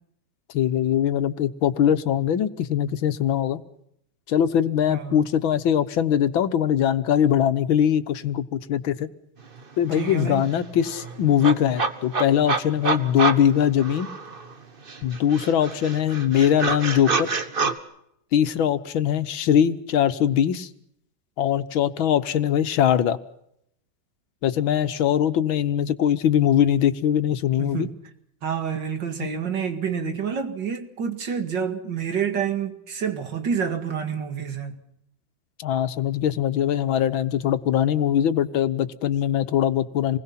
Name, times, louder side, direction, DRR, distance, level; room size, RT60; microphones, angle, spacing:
voice 1, 0.5-3.6 4.3-9.1 9.8-14.1 15.0-17.3 18.3-20.7 21.4-23.2 24.4-27.9 29.2-29.3 35.6-40.2, left 9 dB, 80° left, 1.9 m, -22 dB
voice 2, 4.9-5.3 9.9-10.4 27.6-28.0 28.4-34.8, right 7 dB, 65° right, 2.7 m, -28 dB
sound 1, 9.6-9.7 9.9-14.5 14.9-17.8, right 4 dB, 30° right, 1.4 m, -28 dB
28.0 x 20.5 x 5.8 m
omnidirectional pair, 2.1 m